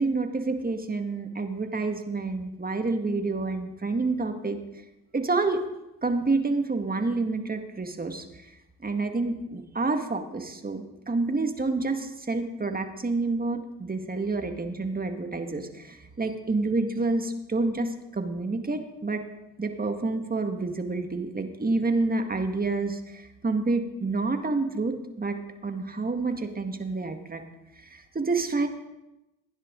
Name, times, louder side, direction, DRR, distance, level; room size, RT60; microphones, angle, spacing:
voice 1, 0.0-4.6 5.1-5.6 6.0-8.2 8.8-19.2 19.6-27.4 27.9-28.7, right 3 dB, 25° right, 5 dB, 1.9 m, -28 dB
16.5 x 10.0 x 3.9 m, 0.96 s
supercardioid pair, 50°, 35 cm